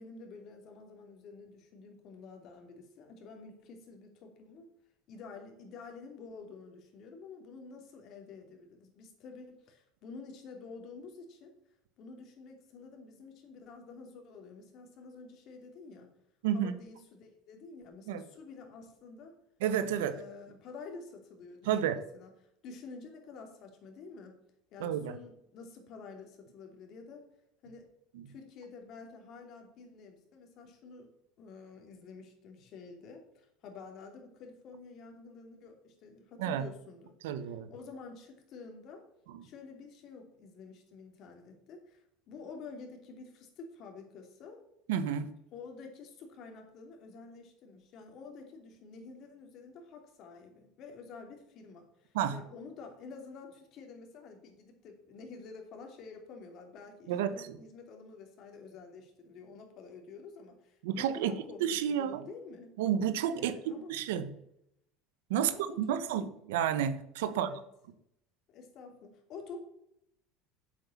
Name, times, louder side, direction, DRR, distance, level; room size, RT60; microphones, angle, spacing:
voice 1, 0.0-4.7 5.1-11.5 12.0-16.1 16.5-19.3 20.0-22.3 22.6-24.4 24.7-27.2 27.6-27.9 28.3-31.1 31.4-39.0 39.4-44.6 45.5-62.8 63.3-63.9 65.3-66.3 67.3-67.6 68.5-69.6, left 4 dB, 55° left, 4 dB, 2.9 m, -49 dB
voice 2, 16.4-16.8 18.1-18.2 19.6-20.1 21.6-22.0 24.8-25.1 28.1-28.3 36.4-36.6 37.2-37.7 39.3-39.5 44.9-45.3 52.1-52.4 57.1-57.6 60.8-61.3 61.6-62.2 62.8-64.3 65.3-65.5 65.8-67.5, right 9 dB, 90° right, 12 dB, 1.0 m, -31 dB
8.2 x 7.8 x 7.2 m, 0.78 s
supercardioid pair, 115°, 0 cm